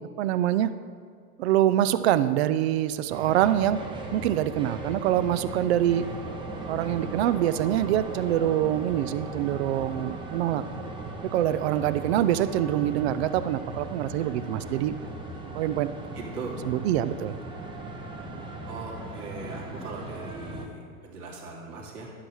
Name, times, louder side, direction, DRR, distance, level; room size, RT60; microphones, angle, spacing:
voice 1, 0.2-0.7 1.4-3.8 4.1-6.1 6.7-10.6 11.3-14.9 15.5-15.9 16.6-17.4, right 12 dB, 45° right, 14 dB, 0.4 m, -25 dB
sound 1, 3.1-20.7, right 2 dB, 10° right, 0.7 m, -38 dB
voice 2, 16.1-16.6 18.6-22.1, right 3 dB, 70° right, -2 dB, 2.8 m, -39 dB
11.5 x 5.6 x 6.3 m, 2.1 s
hypercardioid pair, 135°, 47 cm